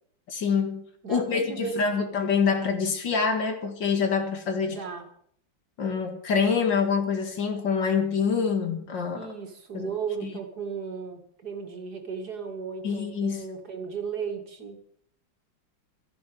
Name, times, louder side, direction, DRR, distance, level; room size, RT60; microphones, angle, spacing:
voice 1, 0.3-4.8 5.8-9.3 9.7-9.9 10.2-10.3 12.8-13.4, left 5 dB, 65° left, 6 dB, 2.5 m, -26 dB
voice 2, 1.0-2.1 4.7-5.1 9.1-14.8, right 6 dB, 55° right, 5 dB, 2.4 m, -35 dB
13.0 x 10.5 x 8.0 m, 0.66 s
omnidirectional pair, 2.1 m